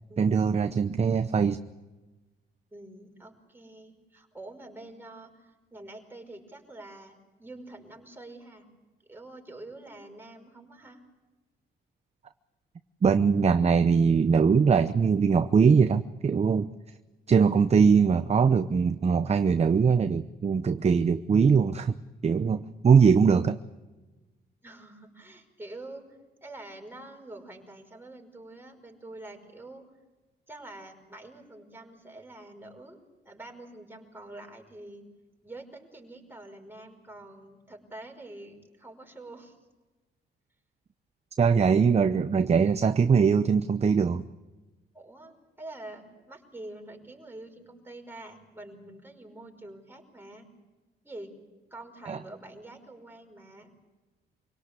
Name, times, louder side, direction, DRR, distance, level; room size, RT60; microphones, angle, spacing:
voice 1, 0.2-1.6 13.0-16.7 17.3-22.0 22.2-23.6 41.4-44.3 52.1-52.2, right 6 dB, 30° right, 10 dB, 0.8 m, -22 dB
voice 2, 2.7-8.7 9.0-11.0 24.6-29.9 30.5-33.0 33.3-35.1 35.4-39.6 44.9-50.5 51.0-51.4 51.7-53.7, right 2 dB, 10° right, 2 dB, 5.3 m, -46 dB
26.0 x 18.0 x 8.3 m, 1.2 s
cardioid pair, 90°, 20 cm